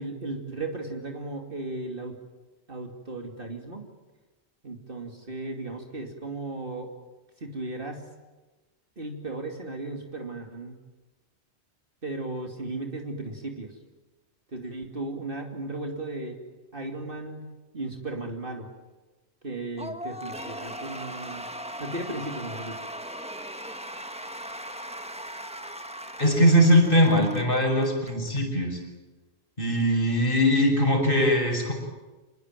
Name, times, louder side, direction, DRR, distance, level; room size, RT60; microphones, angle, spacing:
voice 1, 0.0-2.2 2.7-3.8 4.6-6.9 7.4-8.1 9.0-10.8 12.0-13.7 14.5-16.4 16.7-18.7 19.4-21.4 21.8-22.7, right 2 dB, 50° right, 3 dB, 2.8 m, -35 dB
Cheering / Applause / Crowd, 19.8-28.4, equal, 5° right, 1.4 m, -39 dB
voice 2, 26.2-28.8 29.6-31.7, equal, 50° left, 2 dB, 6.7 m, -21 dB
27.0 x 20.5 x 9.1 m, 1.2 s
omnidirectional pair, 1.2 m